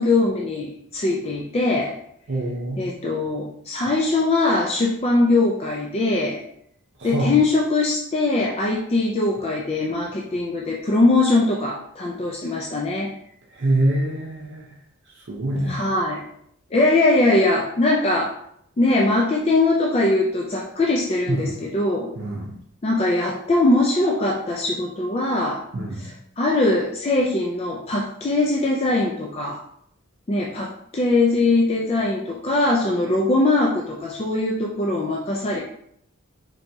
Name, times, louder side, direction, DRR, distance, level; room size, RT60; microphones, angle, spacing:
voice 1, 0.0-2.0 2.8-6.4 7.0-13.1 15.7-16.3 16.7-18.4 18.8-22.2 22.8-25.6 26.0-26.1 26.4-29.6 30.3-35.6, left 2 dB, 30° left, -2 dB, 0.4 m, -21 dB
voice 2, 2.3-2.8 7.0-7.3 13.6-14.7 15.3-15.9 21.3-21.5 22.2-22.5 25.7-26.1, right 1 dB, 55° right, -2 dB, 0.7 m, -24 dB
3.9 x 3.4 x 2.7 m, 0.69 s
head